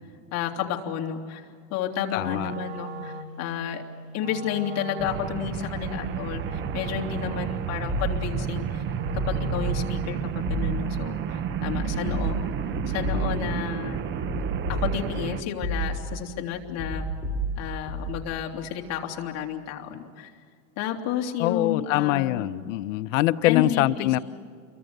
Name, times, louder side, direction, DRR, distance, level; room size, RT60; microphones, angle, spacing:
voice 1, 0.3-1.4 1.7-3.8 4.1-8.8 9.1-12.4 12.9-14.0 14.8-17.1 17.6-20.3 20.8-22.5 23.4-24.2, left 8 dB, 45° left, 1 dB, 2.9 m, -31 dB
voice 2, 2.1-2.5 21.4-24.2, left 16 dB, 80° left, 14 dB, 0.8 m, -24 dB
Wind instrument woodwind instrument, 2.1-10.3, equal, 65° right, 2.3 m, -40 dB
sound 1, 5.0-15.4, right 8 dB, 30° right, 0.9 m, -31 dB
sound 2, 7.9-8.5 9.0-10.1 10.5-11.1 11.6-13.7 14.2-15.3 15.6-16.2 16.8-18.2, right 1 dB, 5° right, 7.0 m, -31 dB
29.5 x 23.5 x 6.8 m, 2.1 s
supercardioid pair, 150°, 38 cm